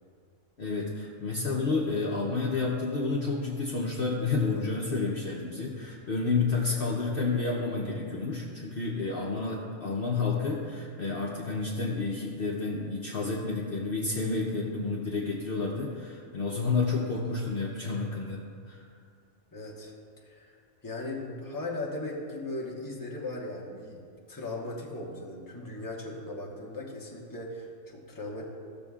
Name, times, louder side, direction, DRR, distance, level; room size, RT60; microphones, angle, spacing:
voice 1, 0.6-18.4 18.7-18.8, left 4 dB, 50° left, -3 dB, 0.8 m, -30 dB
voice 2, 19.5-19.9 20.2-20.6 20.8-24.0 24.3-28.4, left 2 dB, 15° left, -2 dB, 1.0 m, -38 dB
14.0 x 7.0 x 2.4 m, 2.3 s
omnidirectional pair, 1.4 m